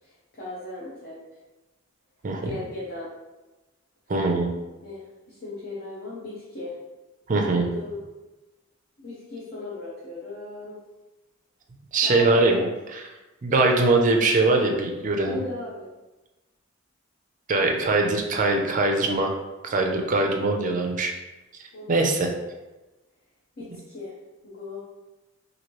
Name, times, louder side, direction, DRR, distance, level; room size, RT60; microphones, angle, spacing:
voice 1, 0.0-1.2 2.4-3.1 4.8-6.7 7.6-8.0 9.0-10.7 12.0-12.6 15.2-15.9 21.7-22.4 23.6-24.2 24.4-24.8, left 2 dB, 50° left, -7 dB, 0.6 m, -37 dB
voice 2, 4.1-4.5 7.3-7.7 11.9-12.7 12.9-13.0 13.4-15.4 17.5-19.3 19.6-21.1 21.9-22.3, right 2 dB, 40° right, 2 dB, 0.4 m, -22 dB
3.0 x 2.6 x 2.9 m, 1.1 s
head